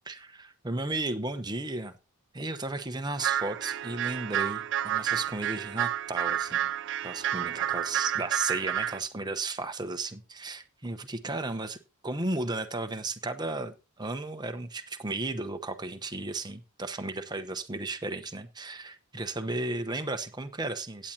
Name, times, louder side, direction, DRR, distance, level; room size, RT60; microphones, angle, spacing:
voice 1, 0.1-1.9 2.3-6.7 7.0-11.8 12.0-21.1, right 2 dB, 20° right, 0.9 m, -34 dB
sound 1, 3.2-9.0, right 10 dB, 55° right, 0.5 m, -30 dB
16.5 x 8.8 x 2.9 m
head